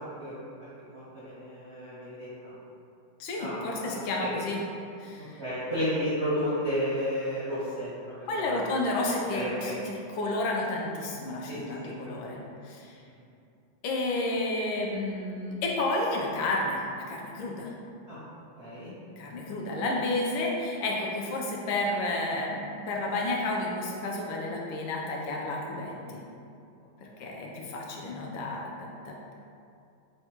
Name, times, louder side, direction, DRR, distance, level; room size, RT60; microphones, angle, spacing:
voice 1, 0.0-2.5 3.4-4.3 5.1-9.8 11.4-11.9 13.1-13.2 18.1-18.2 18.6-18.9 27.0-27.3, equal, 65° right, -11 dB, 0.6 m, -33 dB
voice 2, 3.2-4.6 5.0-5.4 8.3-12.9 13.8-17.7 19.2-26.2 27.0-29.3, left 2 dB, 75° left, -2 dB, 1.3 m, -31 dB
3.7 x 2.2 x 4.3 m, 2.5 s
omnidirectional pair, 2.2 m